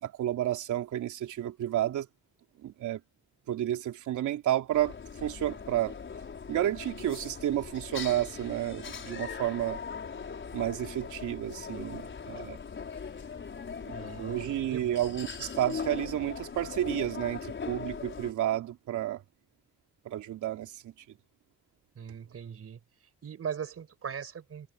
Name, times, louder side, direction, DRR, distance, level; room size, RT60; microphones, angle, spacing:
voice 1, 0.0-2.1 2.6-3.0 3.5-4.9 5.2-6.0 6.5-9.8 10.5-12.6 13.9-19.2 20.0-20.9, right 12 dB, 75° right, 3.3 m, -31 dB
sound 1, 4.7-18.3, left 6 dB, 40° left, 5.2 m, -40 dB
voice 2, 13.9-14.9 22.0-22.8 23.2-24.7, right 7 dB, 50° right, 4.8 m, -40 dB
cardioid pair, 90°, 30 cm